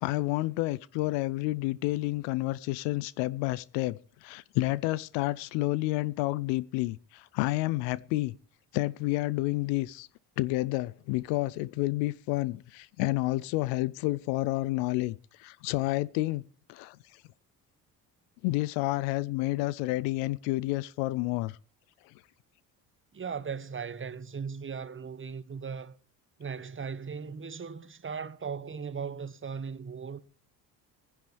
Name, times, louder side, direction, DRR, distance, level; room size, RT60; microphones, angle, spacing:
voice 1, 0.0-8.3 8.7-10.1 10.4-16.4 16.7-17.0 18.4-21.6 22.1-22.2, left 19 dB, 65° left, 0.6 m, -30 dB
voice 2, 23.1-25.9 26.4-30.2, right 6 dB, 25° right, 1.1 m, -38 dB
22.0 x 10.5 x 3.3 m
hypercardioid pair, 50°, 49 cm